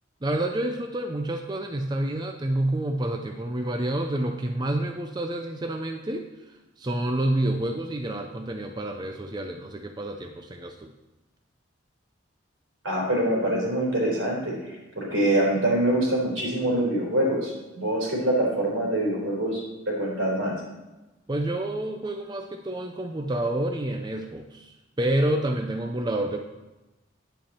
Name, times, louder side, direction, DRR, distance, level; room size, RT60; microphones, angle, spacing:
voice 1, 0.2-10.9 21.3-26.4, right 1 dB, 20° right, 4 dB, 0.5 m, -28 dB
voice 2, 12.8-20.5, right 1 dB, 80° right, -3 dB, 3.9 m, -25 dB
9.8 x 7.7 x 4.3 m, 1.1 s
head